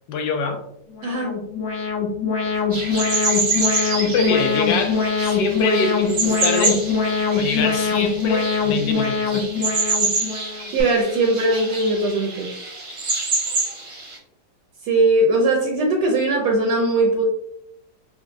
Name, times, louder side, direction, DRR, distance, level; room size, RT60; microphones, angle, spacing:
voice 1, 0.1-0.6 3.2-3.3 4.0-6.8 7.3-9.5, left 4 dB, 75° left, 4 dB, 1.2 m, -24 dB
Alarm, 0.9-10.8, left 5 dB, 55° left, 1.0 m, -23 dB
voice 2, 1.0-1.3 10.7-12.5 14.8-17.3, right 2 dB, 75° right, 1 dB, 1.1 m, -20 dB
sound 1, 2.7-14.2, right 3 dB, 50° right, 0.8 m, -27 dB
3.9 x 2.3 x 2.5 m, 0.76 s
omnidirectional pair, 2.0 m